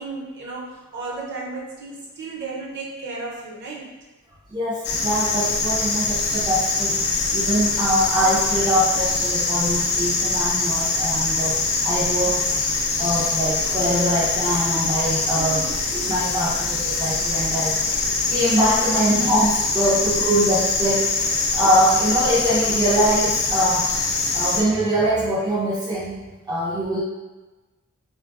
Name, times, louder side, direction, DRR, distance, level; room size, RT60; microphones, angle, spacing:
voice 1, 0.0-3.9 15.4-15.8, right 3 dB, 55° right, -4 dB, 0.7 m, -34 dB
voice 2, 4.5-12.5 13.0-15.6 15.9-23.9 24.3-26.2 26.5-27.0, right 1 dB, 20° right, -6 dB, 0.3 m, -23 dB
sound 1, 4.8-24.6, left 3 dB, 50° left, 0.5 m, -23 dB
3.8 x 2.2 x 2.4 m, 1.2 s
head